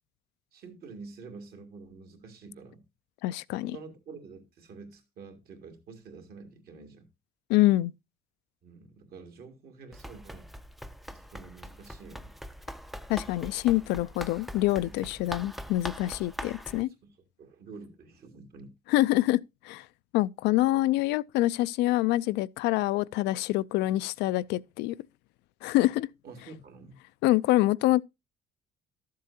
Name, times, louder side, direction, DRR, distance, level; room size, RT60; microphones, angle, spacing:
voice 1, 0.5-2.8 3.6-7.1 8.6-10.5 11.1-12.3 14.8-15.1 17.4-18.7 26.2-26.9, right 4 dB, 65° right, 2.2 m, -48 dB
voice 2, 3.2-3.8 7.5-7.9 13.1-16.9 18.9-19.9 20.1-25.0 25.6-26.1 27.2-28.0, left 17 dB, 85° left, 0.4 m, -26 dB
Run, 9.9-16.8, equal, ahead, 0.4 m, -42 dB
12.5 x 7.5 x 2.7 m
cardioid pair, 110°, 17 cm